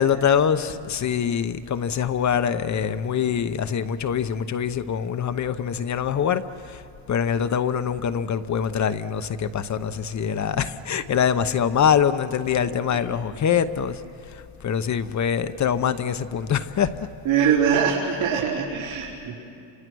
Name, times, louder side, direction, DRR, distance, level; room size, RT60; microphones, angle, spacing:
voice 1, 0.0-16.9, left 8 dB, 35° left, 11 dB, 0.8 m, -24 dB
voice 2, 17.2-19.3, right 7 dB, 75° right, -7 dB, 4.5 m, -22 dB
30.0 x 26.5 x 6.3 m, 2.5 s
cardioid pair, 130°, 49 cm